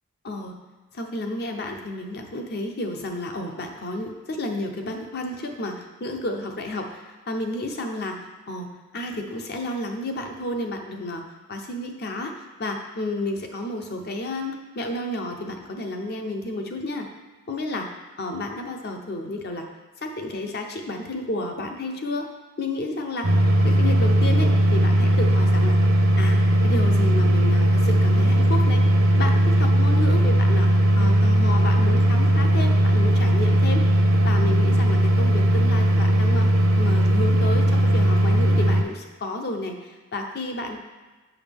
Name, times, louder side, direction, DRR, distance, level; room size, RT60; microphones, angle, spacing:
voice 1, 0.2-0.6 0.9-8.7 8.9-11.2 11.5-17.1 17.5-17.9 18.2-19.6 20.0-22.3 22.6-23.3 23.6-25.8 26.2-28.8 29.1-30.7 31.0-33.8 34.2-36.5 36.8-40.8, left 1 dB, 45° left, 4 dB, 0.7 m, -31 dB
sound 1, 23.2-38.8, right 1 dB, 65° right, 0.7 m, -18 dB
7.1 x 6.1 x 3.5 m, 1.3 s
head